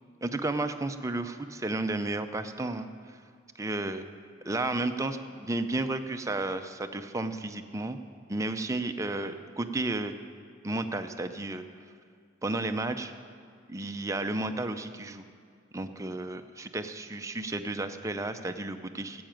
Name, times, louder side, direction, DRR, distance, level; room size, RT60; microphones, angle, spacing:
voice 1, 0.2-2.9 3.6-4.0 4.5-8.0 8.3-10.1 10.6-11.6 12.4-13.1 13.7-15.2 15.7-19.2, right 2 dB, 15° right, 7 dB, 0.6 m, -32 dB
12.0 x 7.9 x 9.0 m, 2.2 s
head